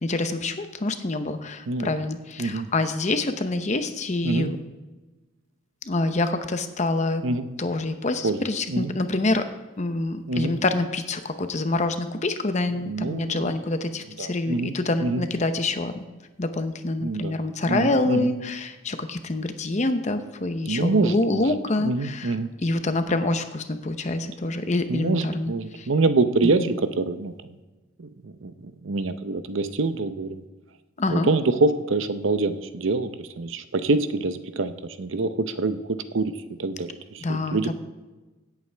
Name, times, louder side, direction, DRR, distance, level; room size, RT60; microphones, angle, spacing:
voice 1, 0.0-4.6 5.9-7.3 7.6-9.5 9.8-16.0 16.4-25.9 26.4-26.7 31.0-31.3 37.2-37.7, left 2 dB, 35° left, 9 dB, 0.7 m, -26 dB
voice 2, 12.8-13.5 14.2-14.7 15.0-15.2 17.0-17.3 17.7-18.3 20.7-21.4 21.8-22.5 24.9-27.3 28.0-30.4 31.1-37.7, right 3 dB, 70° right, 11 dB, 0.7 m, -25 dB
17.0 x 8.3 x 3.4 m, 1.2 s
head